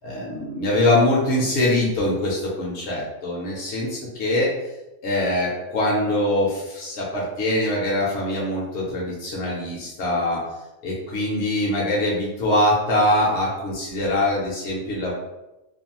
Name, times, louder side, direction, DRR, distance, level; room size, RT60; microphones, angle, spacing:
voice 1, 0.0-4.5 5.0-10.4 10.8-15.1, left 1 dB, 70° left, -4 dB, 0.9 m, -23 dB
2.5 x 2.2 x 2.9 m, 0.97 s
omnidirectional pair, 1.3 m